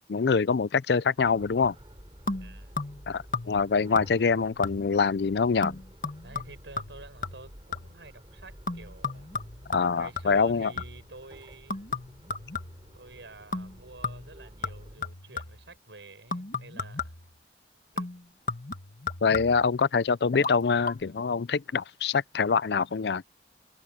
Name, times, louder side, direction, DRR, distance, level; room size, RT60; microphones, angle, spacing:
voice 1, 0.1-1.7 3.1-5.8 9.7-10.7 19.2-23.2, left 5 dB, 65° left, 0.5 m, -25 dB
sound 1, 1.2-15.0, equal, 25° right, 6.0 m, -51 dB
sound 2, 2.3-3.1 3.3-3.7 4.0-4.3 4.6-5.1 5.6-8.1 8.7-11.1 11.7-13.0 13.5-13.8 14.0-15.7 16.3-17.3 18.0-19.7 20.3-20.6 20.8-20.9, left 4 dB, 50° left, 1.7 m, -35 dB
voice 2, 2.4-2.8 6.2-9.5 9.9-11.8 12.9-17.2 17.9-18.2, right 2 dB, 90° right, 7.2 m, -49 dB
head